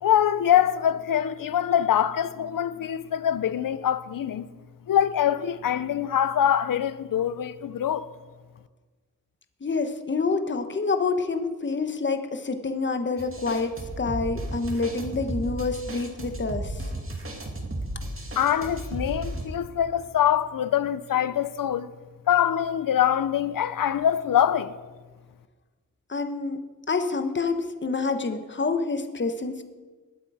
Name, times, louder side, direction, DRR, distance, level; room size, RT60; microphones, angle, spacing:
voice 1, 0.0-4.4 4.9-8.1 18.4-21.9 22.3-24.7, left 10 dB, 80° left, 0.7 m, -24 dB
voice 2, 9.6-16.8 26.1-26.6 26.9-29.6, left 4 dB, 35° left, 1.2 m, -27 dB
sound 1, 13.2-19.5, right 1 dB, 40° right, 2.5 m, -34 dB
20.5 x 8.5 x 4.9 m
wide cardioid pair, 85°, 33 cm